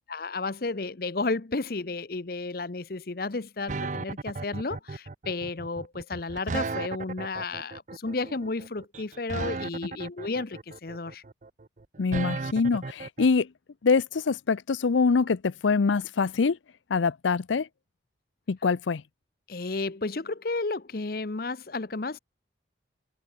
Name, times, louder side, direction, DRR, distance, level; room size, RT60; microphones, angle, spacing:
voice 1, 0.1-11.2 19.5-22.2, left 3 dB, 55° left, 0.8 m, -32 dB
sound 1, 3.7-13.3, right 3 dB, 40° right, 0.6 m, -35 dB
voice 2, 12.0-13.5 13.8-16.6 16.9-17.7 18.5-19.0, left 4 dB, 90° left, 0.5 m, -24 dB
open air
head